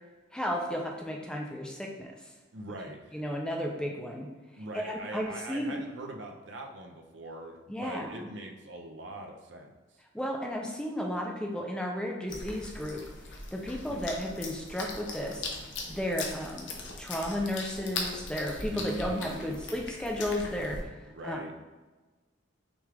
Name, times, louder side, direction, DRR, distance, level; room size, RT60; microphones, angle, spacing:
voice 1, 0.3-2.1 3.1-4.3 4.7-5.8 7.7-8.3 10.1-13.0 13.5-15.4 15.9-16.7 17.0-20.9 21.2-21.4, equal, 5° left, 0 dB, 0.4 m, -33 dB
voice 2, 2.5-3.2 4.6-10.0 13.9-14.0 18.7-19.6 21.0-21.5, right 1 dB, 70° right, 3 dB, 0.6 m, -42 dB
sound 1, 12.3-20.8, left 3 dB, 70° left, 0.7 m, -40 dB
6.1 x 2.4 x 3.3 m, 1.2 s
head